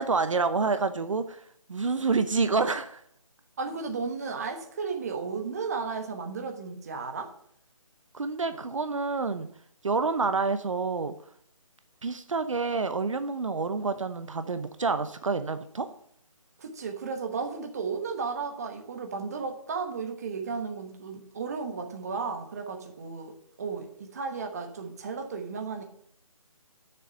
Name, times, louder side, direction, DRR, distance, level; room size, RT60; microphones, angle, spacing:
voice 1, 0.0-1.4 1.7-3.0 8.1-9.5 9.8-11.1 12.0-15.9, right 4 dB, 60° right, 10 dB, 0.8 m, -28 dB
voice 2, 3.6-7.3 16.6-25.8, right 5 dB, 30° right, 5 dB, 1.1 m, -34 dB
6.9 x 6.6 x 7.6 m, 0.67 s
figure-of-eight pair, 165°, 18 cm